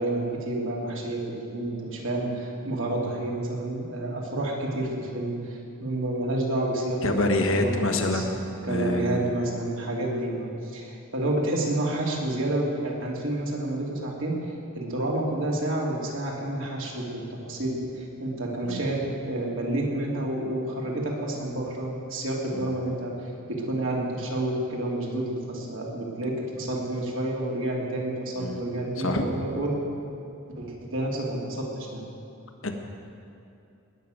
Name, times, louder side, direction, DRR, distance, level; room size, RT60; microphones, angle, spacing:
voice 1, 0.0-8.3 8.6-14.3 14.7-23.1 23.7-29.7 30.6-32.0, right 1 dB, 65° right, -2 dB, 3.0 m, -29 dB
voice 2, 7.0-8.4 8.7-9.3 18.6-18.9 22.5-22.7 28.4-28.6 29.0-29.3 32.6-32.7, left 2 dB, 70° left, 4 dB, 1.5 m, -26 dB
19.5 x 6.8 x 9.2 m, 2.7 s
head